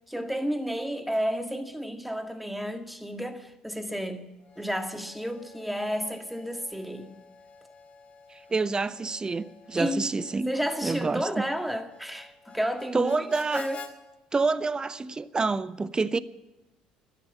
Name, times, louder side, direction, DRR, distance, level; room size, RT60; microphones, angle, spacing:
voice 1, 0.1-4.3 4.6-7.1 9.7-10.1 10.4-13.2 13.5-13.8, equal, ahead, 1.8 m, -31 dB
Harmonica, 4.4-13.9, left 4 dB, 35° left, 2.4 m, -49 dB
voice 2, 8.3-10.5 10.8-11.3 12.9-13.7 14.3-16.2, right 4 dB, 25° right, 0.7 m, -27 dB
13.0 x 10.0 x 9.2 m
hypercardioid pair, 60°, 3 cm